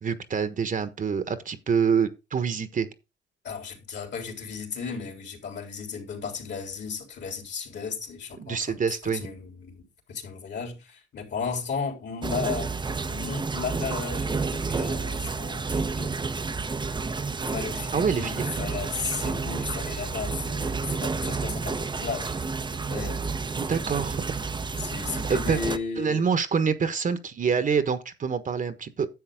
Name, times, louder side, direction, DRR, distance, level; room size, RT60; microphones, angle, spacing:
voice 1, 0.0-2.9 8.4-9.2 17.9-18.7 23.6-24.2 25.3-25.6 26.0-29.1, right 6 dB, 40° right, 1.3 m, -26 dB
voice 2, 3.4-12.7 13.0-16.2 17.5-22.3 22.9-23.2 24.7-26.3, left 5 dB, 60° left, 3.8 m, -35 dB
sound 1, 12.2-25.8, right 4 dB, 25° right, 0.8 m, -30 dB
10.5 x 7.4 x 3.7 m
cardioid pair, 90°, 20 cm